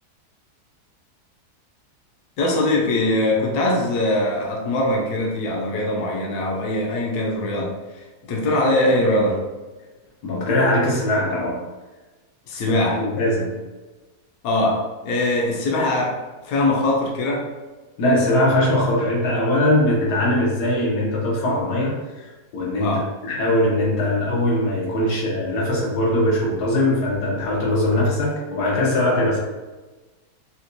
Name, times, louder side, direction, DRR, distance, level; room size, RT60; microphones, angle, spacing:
voice 1, 2.4-7.8 8.3-9.4 12.5-13.0 14.4-17.5 22.8-23.1, left 1 dB, 70° left, -2 dB, 1.0 m, -22 dB
voice 2, 10.2-11.6 12.5-13.6 18.0-29.4, left 1 dB, 85° left, -4 dB, 1.5 m, -21 dB
4.2 x 2.2 x 2.6 m, 1.2 s
omnidirectional pair, 1.7 m